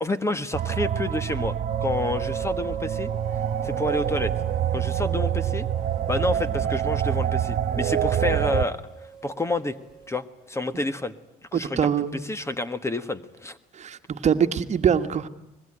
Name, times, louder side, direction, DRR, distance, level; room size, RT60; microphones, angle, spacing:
voice 1, 0.0-1.5 1.8-3.1 3.6-4.3 4.7-5.7 6.1-8.8 9.2-9.8 10.1-11.1 11.5-11.8 12.3-13.6, left 2 dB, 15° left, 14 dB, 1.4 m, -28 dB
sound 1, 0.5-8.7, right 10 dB, 60° right, 1.4 m, -26 dB
sound 2, 1.7-10.2, right 7 dB, 5° right, 2.7 m, -37 dB
voice 2, 11.5-12.2 13.7-15.3, right 8 dB, 40° right, 9 dB, 1.5 m, -23 dB
24.5 x 21.0 x 9.9 m, 0.82 s
cardioid pair, 110°, 17 cm